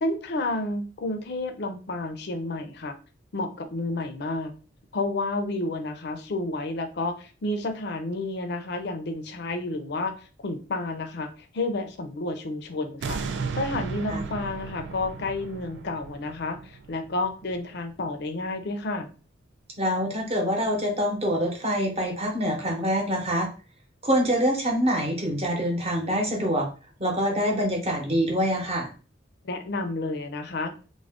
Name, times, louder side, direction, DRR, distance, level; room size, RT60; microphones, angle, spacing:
voice 1, 0.0-2.9 3.3-4.5 4.9-10.1 10.4-19.1 29.4-30.7, left 2 dB, 65° left, 7 dB, 0.5 m, -30 dB
sound 1, 13.0-18.1 18.6-18.7, right 5 dB, 80° right, 0.3 m, -35 dB
voice 2, 19.8-23.5 24.0-26.7 27.0-28.9, equal, 35° right, 1 dB, 0.8 m, -25 dB
2.4 x 2.1 x 3.4 m, 0.36 s
head